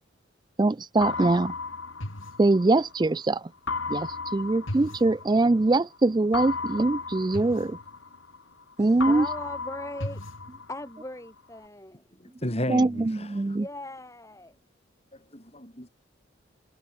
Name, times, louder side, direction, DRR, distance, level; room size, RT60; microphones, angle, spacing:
voice 1, 0.6-1.5 2.4-3.4 3.9-7.8 8.8-9.3 12.7-13.6, right 2 dB, 20° right, 0.3 m, -23 dB
sound 1, 1.0-3.1 3.7-5.7 6.3-8.6 9.0-11.1, left 3 dB, 80° left, 3.7 m, -34 dB
voice 2, 8.8-10.2 10.7-12.2 13.6-14.6, left 1 dB, 15° left, 7.1 m, -40 dB
voice 3, 12.2-13.6 15.3-15.9, left 1 dB, 30° left, 6.7 m, -33 dB
head